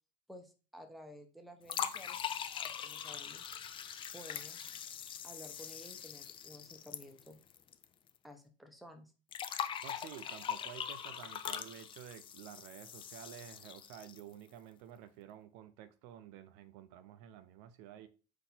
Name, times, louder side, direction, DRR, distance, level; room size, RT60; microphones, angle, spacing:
voice 1, 0.3-2.2 2.8-3.5 4.1-4.7 5.2-7.4 8.2-9.1, equal, ahead, 0.7 m, -53 dB
sound 1, 1.7-7.8 8.1-8.2 9.3-14.3, left 8 dB, 25° left, 0.4 m, -42 dB
voice 2, 9.8-18.1, right 10 dB, 60° right, 0.5 m, -51 dB
4.2 x 2.7 x 4.2 m
supercardioid pair, 115°, 21 cm